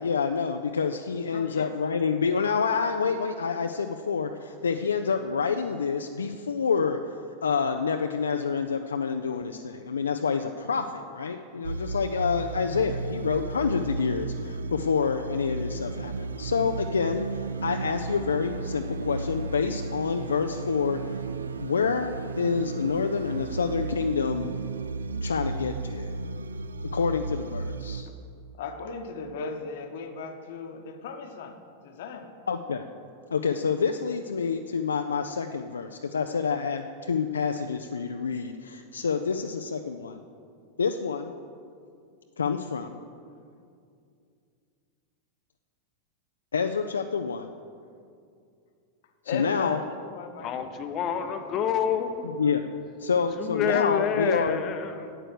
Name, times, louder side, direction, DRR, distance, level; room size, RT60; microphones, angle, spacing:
voice 1, 0.0-7.0 7.4-21.2 21.6-24.5 25.2-26.2 26.9-28.1 32.5-32.8 33.3-40.2 40.8-41.3 42.4-43.0 46.5-47.5 49.2-49.8 52.2-52.6 53.0-54.6, left 5 dB, 70° left, 6 dB, 0.4 m, -28 dB
voice 2, 1.3-1.7 15.0-15.1 15.8-15.9 28.1-28.2 28.5-32.3 49.2-50.7, left 4 dB, 55° left, 7 dB, 1.0 m, -37 dB
sound 1, 11.6-28.0, right 3 dB, 70° right, 0.3 m, -34 dB
voice 3, 50.4-52.4 53.4-55.2, left 7 dB, 35° left, 8 dB, 0.7 m, -28 dB
9.2 x 8.8 x 6.7 m, 2.4 s
figure-of-eight pair, 90°, 0 cm